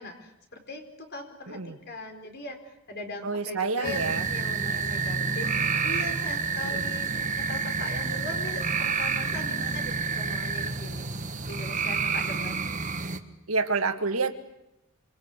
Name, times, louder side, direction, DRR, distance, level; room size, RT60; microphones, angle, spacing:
voice 1, 0.0-7.1 7.4-11.1 11.5-12.6, left 2 dB, 50° left, 5 dB, 4.8 m, -40 dB
voice 2, 3.2-4.3 6.6-6.9 13.5-14.3, right 4 dB, 80° right, 7 dB, 1.9 m, -28 dB
sound 1, 3.8-13.2, right 5 dB, 35° right, 1.6 m, -29 dB
26.5 x 26.0 x 8.2 m, 0.85 s
head